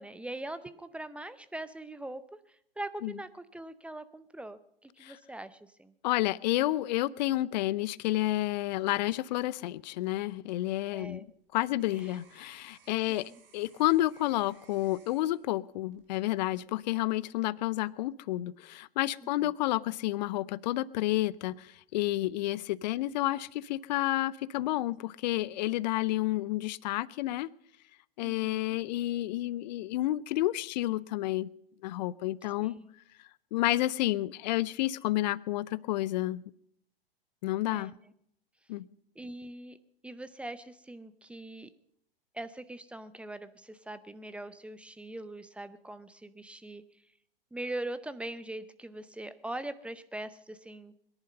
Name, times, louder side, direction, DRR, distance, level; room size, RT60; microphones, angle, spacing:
voice 1, 0.0-2.2 2.5-5.9 10.9-11.2 12.0-12.2 12.9-13.0 13.3-13.4 19.2-19.5 28.2-28.8 32.6-32.9 37.7-38.0 39.2-39.8 40.0-41.7 42.3-46.8 47.5-50.9, right 1 dB, 5° right, 13 dB, 0.6 m, -42 dB
voice 2, 6.0-27.5 28.2-31.5 31.8-32.8 33.5-36.4 37.4-37.9 38.7-38.9, left 16 dB, 45° left, 21 dB, 0.6 m, -30 dB
sound 1, 10.7-16.9 17.4-17.8, right 6 dB, 65° right, 3.6 m, -62 dB
22.0 x 11.0 x 5.4 m, 0.72 s
figure-of-eight pair, 100°, 30 cm